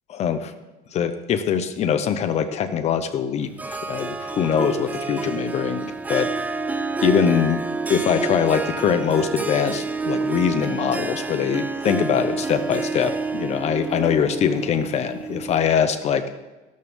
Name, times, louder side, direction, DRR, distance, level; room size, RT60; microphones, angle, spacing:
voice 1, 0.1-0.5 0.9-6.3 7.0-7.6 7.9-16.2, left 8 dB, 40° left, 9 dB, 0.7 m, -23 dB
Harp, 3.6-15.8, right 4 dB, 10° right, 0.4 m, -28 dB
13.0 x 12.5 x 3.5 m, 1.2 s
cardioid pair, 150°, 17 cm